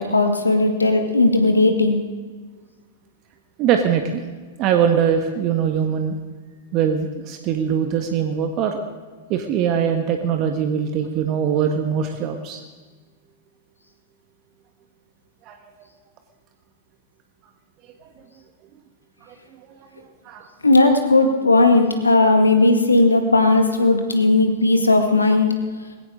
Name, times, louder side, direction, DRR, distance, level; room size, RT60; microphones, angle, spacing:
voice 1, 0.0-2.0 20.6-25.5, left 2 dB, 85° left, 5 dB, 2.1 m, -16 dB
voice 2, 3.6-4.2 4.6-6.2 6.7-8.8 9.3-12.6 15.5-15.6 19.3-19.4 20.2-20.4, right 8 dB, 40° right, 5 dB, 1.5 m, -22 dB
19.5 x 17.0 x 3.8 m, 1.4 s
figure-of-eight pair, 100°, 0 cm